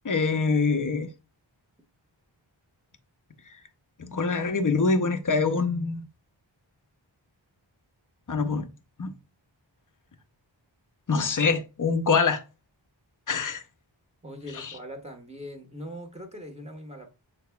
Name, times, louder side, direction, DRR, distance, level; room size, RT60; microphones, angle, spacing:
voice 1, 0.0-1.1 4.0-6.1 8.3-8.7 9.0-9.1 11.1-12.4 13.3-13.6 14.5-14.7, left 4 dB, 40° left, 0.7 m, -25 dB
voice 2, 14.2-17.1, equal, 15° right, 1.3 m, -41 dB
6.8 x 3.4 x 2.3 m
wide cardioid pair, 50°, 47 cm